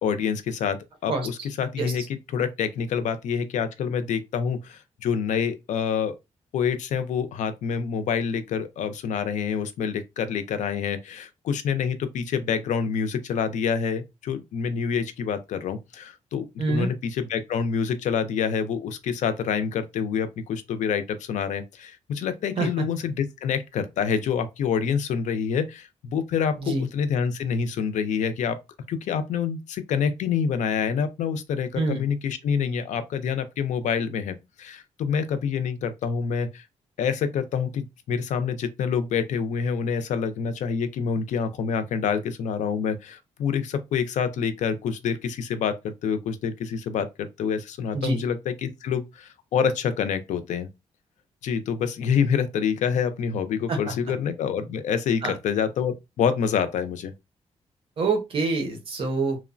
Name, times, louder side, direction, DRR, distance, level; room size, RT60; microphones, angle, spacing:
voice 1, 0.0-2.0 2.3-6.2 6.5-28.6 28.9-36.7 37.0-50.7 51.4-57.1, left 7 dB, 90° left, 0.4 m, -27 dB
voice 2, 16.6-16.9 22.6-22.8 26.6-26.9 31.8-32.0 47.9-48.2 53.7-53.9 55.2-55.3 58.0-59.4, right 3 dB, 50° right, 0.7 m, -26 dB
3.0 x 2.0 x 2.5 m
wide cardioid pair, 175°, 12 cm